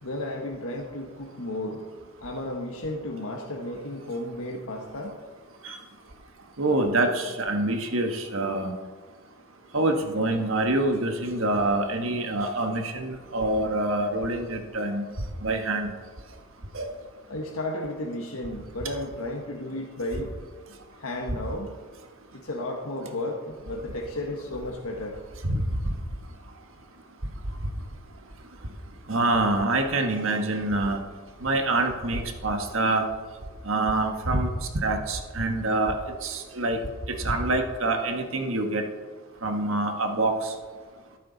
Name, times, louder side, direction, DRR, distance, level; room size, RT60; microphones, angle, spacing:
voice 1, 0.0-1.9 2.2-5.2 17.3-20.4 21.0-21.7 22.3-25.2, left 1 dB, 85° left, 1 dB, 1.3 m, -33 dB
voice 2, 6.6-8.7 9.7-15.0 15.4-15.9 16.7-16.9 25.4-25.6 29.1-31.0 31.4-33.0 33.6-34.5 34.7-35.9 36.2-36.8 37.2-38.8 39.4-40.5, right 2 dB, 70° right, 4 dB, 1.4 m, -26 dB
13.5 x 11.5 x 4.0 m, 1.4 s
head